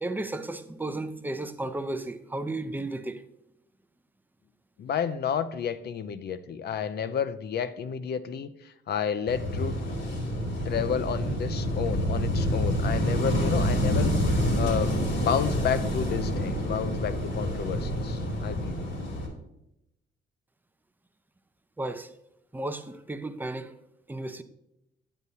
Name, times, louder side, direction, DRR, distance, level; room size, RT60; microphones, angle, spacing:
voice 1, 0.0-3.2 21.8-22.1 22.5-23.7 24.1-24.4, right 2 dB, 10° right, 0.6 m, -34 dB
voice 2, 4.8-9.8 10.7-18.9, left 7 dB, 55° left, 0.6 m, -31 dB
Wind / Waves surf, 9.3-19.3, equal, 70° left, 2.5 m, -27 dB
9.9 x 8.0 x 2.8 m
cardioid pair, 90°, 20 cm